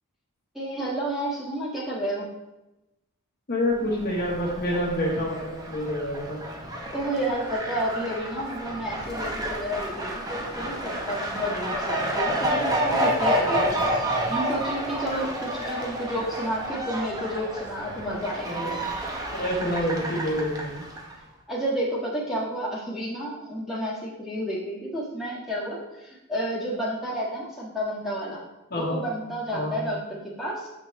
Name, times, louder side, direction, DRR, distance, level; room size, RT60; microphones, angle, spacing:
voice 1, 0.5-2.3 6.9-18.8 21.5-28.4 28.7-30.7, equal, ahead, -7 dB, 1.5 m, -31 dB
voice 2, 3.5-6.4 18.4-18.8 19.3-20.8 28.7-29.0 29.5-29.7, equal, 45° left, -3 dB, 1.1 m, -27 dB
Fowl, 3.8-21.1, right 1 dB, 15° right, 0.7 m, -30 dB
7.3 x 4.6 x 3.1 m, 0.98 s
head